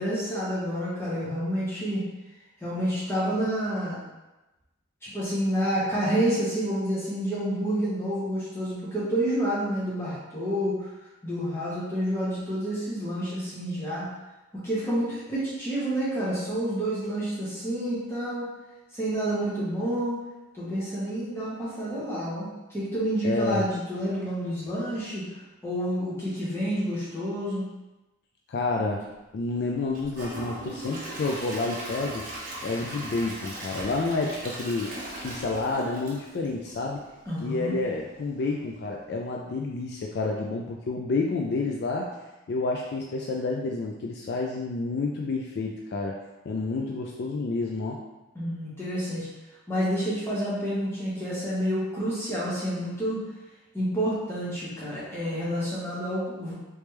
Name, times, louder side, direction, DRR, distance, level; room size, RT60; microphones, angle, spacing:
voice 1, 0.0-2.0 2.6-4.0 5.0-10.9 11.2-14.0 14.6-18.5 18.9-20.2 20.5-25.2 25.6-27.6 37.3-37.7 48.3-49.3 49.7-53.2 53.7-56.5, equal, 10° left, -9 dB, 1.2 m, -29 dB
voice 2, 23.2-23.7 28.5-29.0 29.3-32.2 32.6-37.0 37.4-42.1 42.5-46.2 46.5-48.0, left 3 dB, 50° left, 0 dB, 0.3 m, -29 dB
Gurgling / Toilet flush / Trickle dribble, 29.9-37.0 37.4-37.5 38.0-38.1, right 1 dB, 40° right, 0.8 m, -38 dB
3.3 x 3.1 x 3.1 m, 1.0 s
head